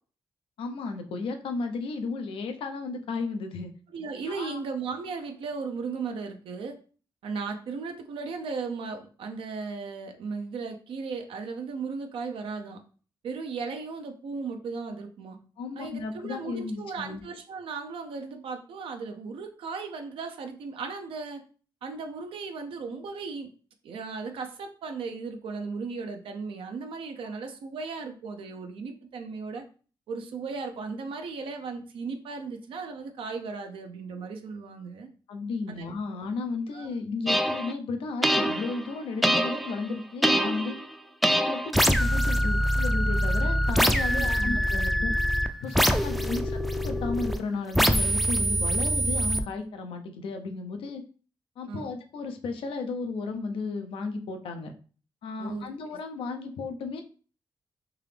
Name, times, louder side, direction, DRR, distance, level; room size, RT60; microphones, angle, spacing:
voice 1, 0.6-3.7 4.3-4.6 15.6-17.2 35.3-40.8 41.2-45.1 45.6-51.0 51.6-54.7 55.2-57.0, left 4 dB, 90° left, 6 dB, 0.6 m, -34 dB
voice 2, 3.9-6.8 7.2-12.8 13.2-15.4 15.8-21.4 21.8-23.5 23.8-29.6 30.1-35.1 35.8-35.9 36.7-36.9 44.0-44.6 46.1-46.4 51.7-51.9 55.4-56.0, right 4 dB, 85° right, 5 dB, 0.6 m, -36 dB
sound 1, 37.3-37.7 38.2-38.9 39.2-39.8 40.2-40.8 41.2-47.4 47.7-49.4, equal, ahead, 0.4 m, -24 dB
3.6 x 2.8 x 3.3 m, 0.39 s
cardioid pair, 75°, 9 cm